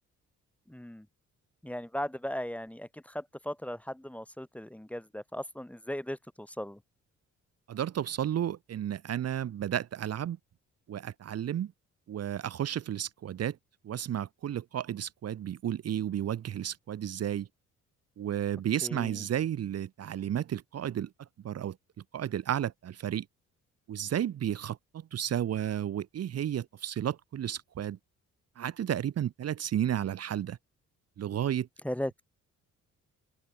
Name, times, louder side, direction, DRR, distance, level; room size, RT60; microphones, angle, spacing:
voice 1, 0.7-1.1 1.6-6.8 18.8-19.2 31.8-32.2, equal, 5° left, 1.7 m, -37 dB
voice 2, 7.7-10.4 10.9-11.7 12.1-13.6 13.8-17.5 18.2-21.1 21.4-21.8 22.1-23.3 23.9-28.0 28.6-30.6 31.2-31.7, right 10 dB, 55° right, 1.1 m, -32 dB
open air
cardioid pair, 90°, 30 cm